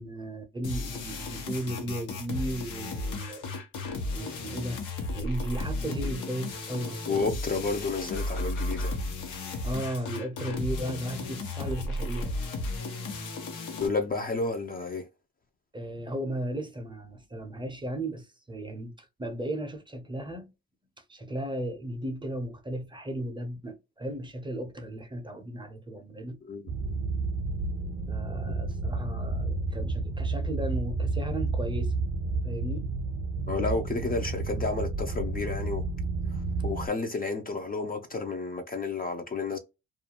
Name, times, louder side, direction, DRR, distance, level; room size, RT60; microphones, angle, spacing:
voice 1, 0.0-3.5 4.1-4.8 5.1-7.3 9.6-12.3 13.8-13.9 15.7-20.5 21.1-26.4 28.1-31.9 32.4-32.9, right 1 dB, 15° right, 0.6 m, -35 dB
sound 1, 0.6-13.9, left 2 dB, 80° left, 0.9 m, -34 dB
voice 2, 7.1-8.9 13.8-15.1 26.4-26.6 33.5-35.8 36.3-39.6, left 3 dB, 30° left, 0.5 m, -31 dB
sound 2, 26.7-36.9, right 3 dB, 50° right, 0.7 m, -31 dB
2.4 x 2.2 x 2.8 m
cardioid pair, 90°, 30 cm